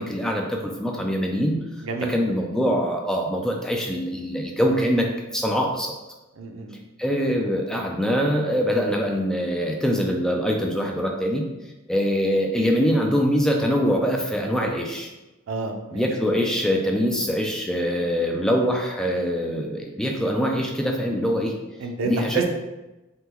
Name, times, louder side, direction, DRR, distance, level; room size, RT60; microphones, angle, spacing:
voice 1, 0.0-1.6 2.1-5.1 5.3-5.9 7.0-11.5 11.9-15.1 15.9-21.5 22.0-22.5, equal, 5° left, 0 dB, 0.3 m, -23 dB
voice 2, 1.8-2.2 6.4-6.8 15.5-16.1 21.8-22.5, right 3 dB, 90° right, 4 dB, 0.4 m, -28 dB
3.5 x 2.1 x 2.9 m, 1.1 s
head